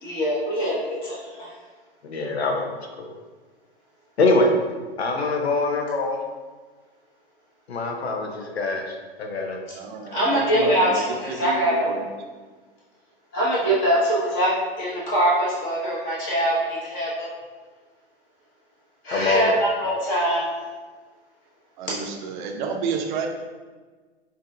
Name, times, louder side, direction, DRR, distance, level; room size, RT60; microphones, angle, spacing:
voice 1, 0.0-1.5 10.1-11.9 13.3-17.3 19.0-20.4, equal, 35° left, -6 dB, 1.2 m, -23 dB
voice 2, 2.0-2.7 3.0-3.1 4.2-4.5 5.0-6.2 7.7-9.6 19.1-19.5, left 3 dB, 80° left, 3 dB, 0.7 m, -24 dB
voice 3, 9.8-11.0 11.3-12.0 21.8-22.0 22.4-23.3, right 5 dB, 50° right, 3 dB, 0.6 m, -30 dB
4.8 x 2.7 x 2.4 m, 1.4 s
figure-of-eight pair, 105°, 32 cm